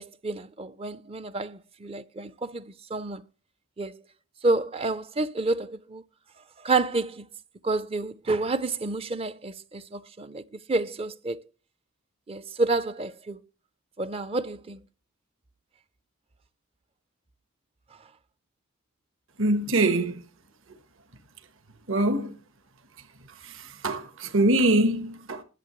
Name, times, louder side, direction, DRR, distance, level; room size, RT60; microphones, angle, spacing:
voice 1, 0.0-3.2 3.8-4.0 4.4-6.0 6.6-7.3 7.6-10.4 10.7-11.4 12.3-13.4 14.0-14.8, right 3 dB, 25° right, 0.5 m, -29 dB
voice 2, 19.4-20.2 21.9-22.3 23.4-25.4, right 2 dB, 60° right, 1.2 m, -24 dB
21.5 x 7.4 x 3.1 m
head